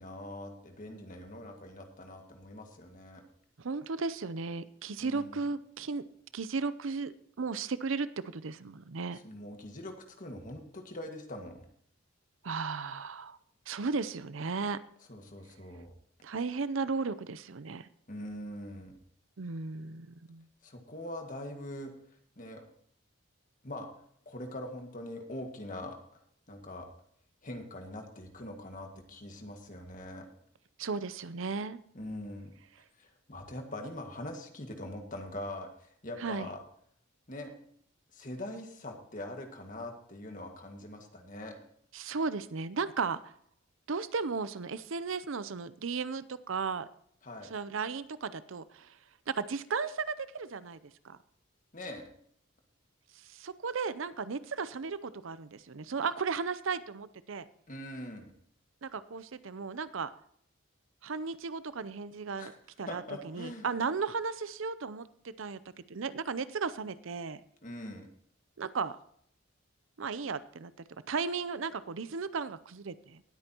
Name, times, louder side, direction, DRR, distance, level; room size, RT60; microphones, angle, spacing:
voice 1, 0.0-3.2 5.0-5.4 9.2-11.7 15.1-15.9 18.1-19.0 20.6-21.9 22.4-22.7 23.6-23.9 24.3-26.2 26.5-26.9 27.4-30.3 31.9-32.5 33.0-36.6 37.3-37.5 38.1-41.5 47.2-47.5 51.7-52.1 57.7-58.3 62.4-62.6 62.9-63.7 67.6-68.1, left 1 dB, 40° left, 4 dB, 1.9 m, -42 dB
voice 2, 3.6-6.0 6.3-9.2 12.4-13.4 13.7-14.8 16.2-17.9 19.4-20.5 30.8-31.8 36.2-36.5 41.9-43.3 43.9-46.9 47.5-49.0 49.3-51.2 53.2-57.4 58.8-60.1 61.0-62.5 62.8-65.6 65.9-67.4 68.6-69.0 70.0-70.7 71.1-73.2, right 4 dB, 70° right, 14 dB, 0.6 m, -35 dB
19.0 x 8.8 x 3.0 m, 0.65 s
head